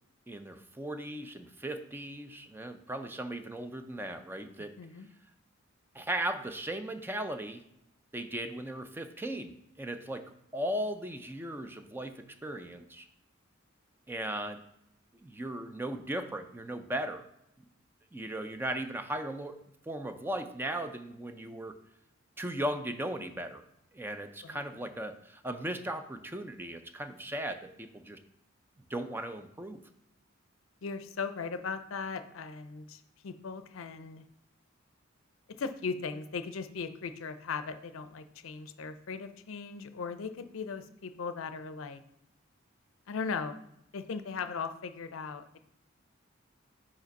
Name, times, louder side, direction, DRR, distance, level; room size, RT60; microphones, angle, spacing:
voice 1, 0.3-4.7 5.9-7.6 8.1-10.2 10.5-13.1 14.1-14.6 15.2-17.2 18.1-19.6 19.9-21.8 22.4-23.6 23.9-28.2 28.9-29.8, right 1 dB, 10° right, 8 dB, 0.4 m, -37 dB
voice 2, 4.8-5.1 24.4-24.7 30.8-34.2 35.6-42.0 43.1-43.6 43.9-45.6, left 5 dB, 80° left, 10 dB, 0.5 m, -38 dB
5.1 x 4.3 x 5.2 m, 0.79 s
head